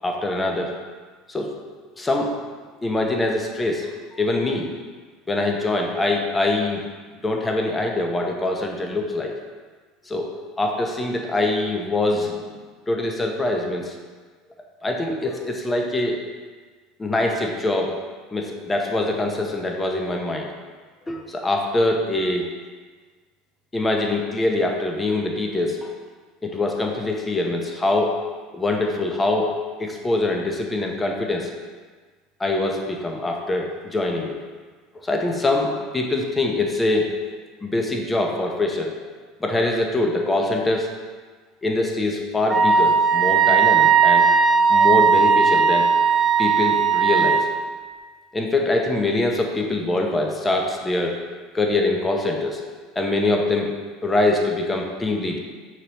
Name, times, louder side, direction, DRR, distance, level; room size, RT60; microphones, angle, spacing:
voice 1, 0.0-0.7 1.3-1.5 2.0-2.3 2.8-3.9 4.2-4.7 5.3-6.8 7.2-9.3 10.1-10.3 10.6-12.5 12.9-13.9 14.8-16.2 17.0-18.0 18.3-20.5 21.1-22.5 23.7-25.9 26.4-28.1 28.5-29.5 29.8-31.5 32.4-34.3 35.0-37.0 37.6-38.9 39.4-40.9 41.6-44.3 44.7-45.9 46.4-47.4 48.3-51.1 51.5-52.6 53.0-53.7 54.0-55.4, left 2 dB, 20° left, 1 dB, 0.7 m, -23 dB
Wind instrument woodwind instrument, 42.5-47.4, right 6 dB, 25° right, 0.4 m, -17 dB
5.8 x 3.1 x 3.0 m, 1.5 s
hypercardioid pair, 85°, 0 cm